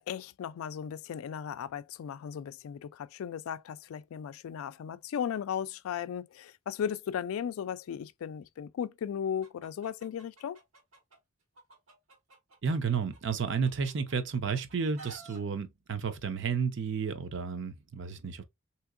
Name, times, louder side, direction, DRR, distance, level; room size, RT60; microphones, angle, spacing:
voice 1, 0.0-10.6, left 8 dB, 85° left, 0.3 m, -36 dB
Chicken rooster, 9.4-11.2 11.6-14.1 14.5-15.4, right 4 dB, 85° right, 1.4 m, -52 dB
voice 2, 12.6-18.4, right 5 dB, 60° right, 0.6 m, -32 dB
3.6 x 2.9 x 2.4 m
head